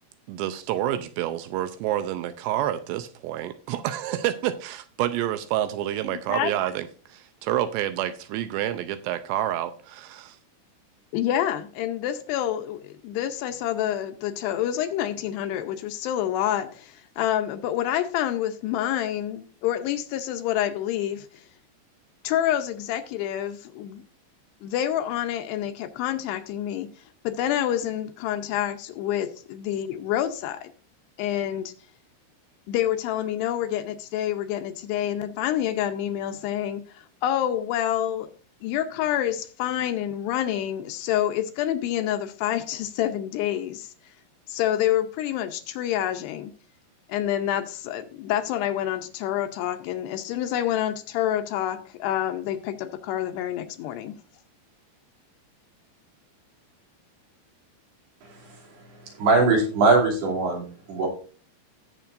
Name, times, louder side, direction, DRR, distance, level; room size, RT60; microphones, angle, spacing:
voice 1, 0.3-10.4, right 12 dB, 85° right, 11 dB, 2.7 m, -28 dB
voice 2, 6.1-6.5 11.1-21.4 22.2-24.0 24.6-26.9 27.2-30.7 31.2-31.7 32.7-38.3 38.6-43.9 44.5-46.5 47.1-54.2, left 11 dB, 80° left, 8 dB, 2.7 m, -27 dB
voice 3, 59.2-61.1, right 3 dB, 65° right, -1 dB, 4.8 m, -21 dB
17.5 x 7.3 x 2.5 m, 0.39 s
omnidirectional pair, 5.1 m